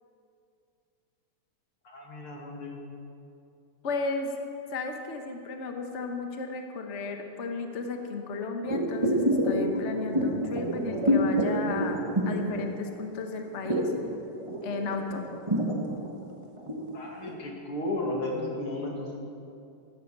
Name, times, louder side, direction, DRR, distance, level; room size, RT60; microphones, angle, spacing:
voice 1, 1.8-2.8 16.9-19.2, left 1 dB, 45° left, -1 dB, 3.1 m, -34 dB
voice 2, 3.8-4.3 4.7-13.9 14.6-15.5, left 3 dB, 80° left, 4 dB, 0.6 m, -34 dB
sound 1, 8.7-13.1 13.4-16.9 17.3-17.4, equal, 15° right, 1.0 m, -27 dB
15.0 x 13.5 x 6.8 m, 2.6 s
omnidirectional pair, 3.4 m